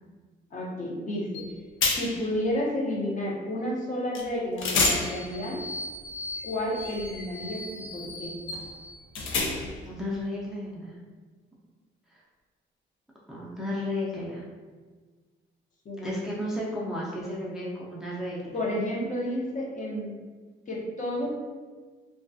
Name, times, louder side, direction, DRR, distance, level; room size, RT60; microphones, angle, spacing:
voice 1, 0.5-1.4 1.9-5.6 6.4-8.4 15.8-16.1 18.5-20.1 20.7-21.3, left 1 dB, 40° left, -3 dB, 0.7 m, -31 dB
sound 1, 1.3-1.5 1.8-2.3 4.1-4.3 4.6-9.9, left 3 dB, 75° left, 0.5 m, -31 dB
voice 2, 9.8-11.0 12.1-12.2 13.3-14.4 16.0-18.6, left 1 dB, ahead, -6 dB, 0.5 m, -33 dB
2.3 x 2.2 x 2.6 m, 1.4 s
cardioid pair, 90°, 20 cm